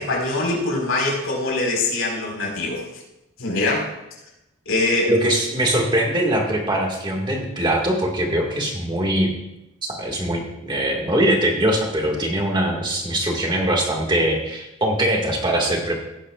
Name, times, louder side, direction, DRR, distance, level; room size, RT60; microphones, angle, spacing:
voice 1, 0.0-2.8 3.4-3.9 4.6-5.1, left 2 dB, 80° left, -2 dB, 4.5 m, -23 dB
voice 2, 5.1-9.3 9.8-16.0, right 1 dB, 20° right, 1 dB, 1.9 m, -22 dB
17.5 x 10.0 x 2.4 m, 0.89 s
head